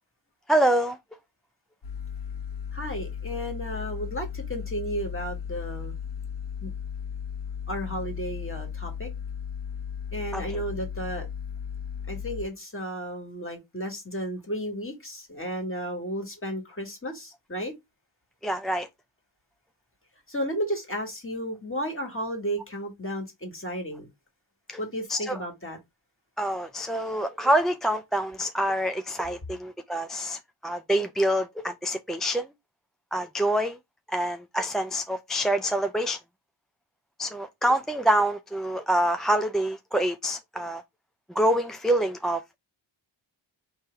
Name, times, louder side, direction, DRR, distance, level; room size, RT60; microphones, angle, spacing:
voice 1, 0.5-1.0 10.3-10.4 18.4-18.9 24.7-24.8 25.1-25.4 26.4-32.5 33.1-33.8 34.1-36.2 37.2-40.8 41.4-42.4, right 1 dB, ahead, 0.3 m, -26 dB
sound 1, 1.8-12.5, left 7 dB, 55° left, 1.1 m, -35 dB
voice 2, 2.7-5.9 6.6-6.7 7.7-9.1 10.1-11.3 12.1-17.7 20.3-24.1 24.8-25.8, equal, 25° left, 1.8 m, -33 dB
4.6 x 3.2 x 3.4 m
wide cardioid pair, 70°, 49 cm